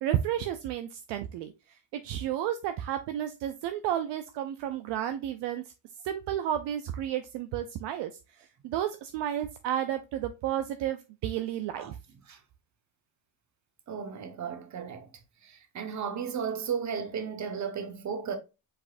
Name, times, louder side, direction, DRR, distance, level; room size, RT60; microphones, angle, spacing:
voice 1, 0.0-1.5 1.9-5.6 6.0-8.1 8.4-12.0, right 11 dB, 65° right, 0.6 m, -32 dB
voice 2, 13.9-15.1 15.4-18.4, right 6 dB, 35° right, 1.2 m, -34 dB
5.1 x 4.1 x 2.5 m
cardioid pair, 115°, 47 cm